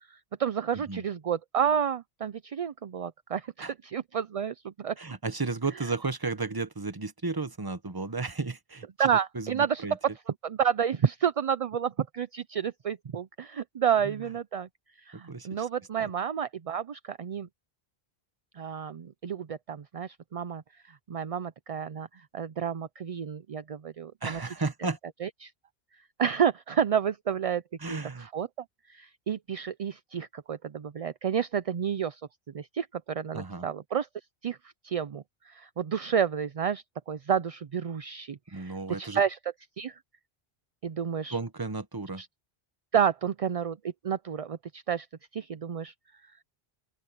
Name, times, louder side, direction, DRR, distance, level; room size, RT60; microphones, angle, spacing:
voice 1, 0.1-5.0 9.0-9.9 10.4-14.7 15.1-17.5 18.5-24.4 25.2-25.5 26.2-27.6 27.9-28.5 28.9-32.2 32.5-34.1 34.4-34.6 34.8-39.4 39.8-40.0 40.8-41.4 42.2-42.3 42.9-43.8 44.0-45.1 45.3-45.9, right 8 dB, 45° right, 0.5 m, -30 dB
voice 2, 5.0-8.9 9.3-10.0 14.0-14.1 15.3-15.7 16.0-16.1 24.2-25.0 27.8-28.3 33.3-33.7 38.5-39.2 41.3-42.2, right 3 dB, 25° right, 0.9 m, -33 dB
open air
omnidirectional pair, 1.0 m